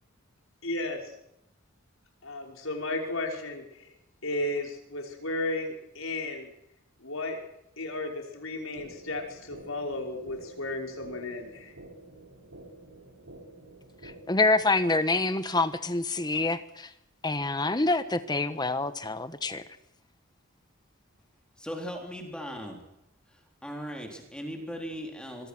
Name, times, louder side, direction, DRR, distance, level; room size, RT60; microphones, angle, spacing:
voice 1, 0.6-1.1 2.2-3.9 4.2-6.5 7.0-7.4 7.8-11.7, left 2 dB, 75° left, 2 dB, 5.6 m, -34 dB
sound 1, 8.8-14.8, right 2 dB, 75° right, 5.8 m, -50 dB
voice 2, 14.0-16.9 17.2-19.6, left 3 dB, 20° left, 11 dB, 1.4 m, -26 dB
voice 3, 21.6-22.8 23.6-25.5, equal, 5° left, 2 dB, 3.9 m, -38 dB
25.0 x 23.0 x 6.3 m, 0.81 s
head